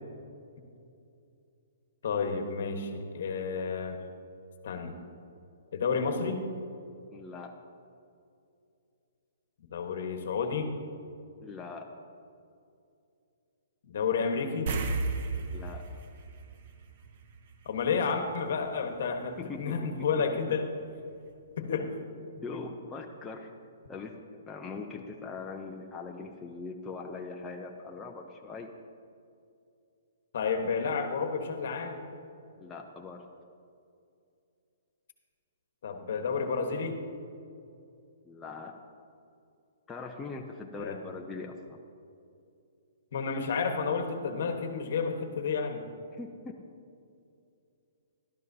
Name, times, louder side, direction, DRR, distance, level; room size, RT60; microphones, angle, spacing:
voice 1, 2.0-4.0 4.6-5.0 5.7-6.5 9.7-10.7 13.9-14.7 17.6-20.7 21.6-22.1 30.3-32.0 35.8-37.0 40.8-41.0 43.1-45.8, left 5 dB, 60° left, 5 dB, 1.2 m, -31 dB
voice 2, 7.1-7.5 11.4-11.9 15.5-15.8 19.4-20.6 22.4-23.5 23.9-28.7 32.6-33.2 38.3-38.8 39.9-41.8 46.1-46.6, left 3 dB, 10° left, 1 dB, 0.5 m, -41 dB
sound 1, 14.7-17.4 17.7-17.9 20.8-20.9 21.2-21.3, right 3 dB, 45° right, 0.8 m, -34 dB
13.5 x 12.5 x 2.7 m, 2.5 s
hypercardioid pair, 160°, 0 cm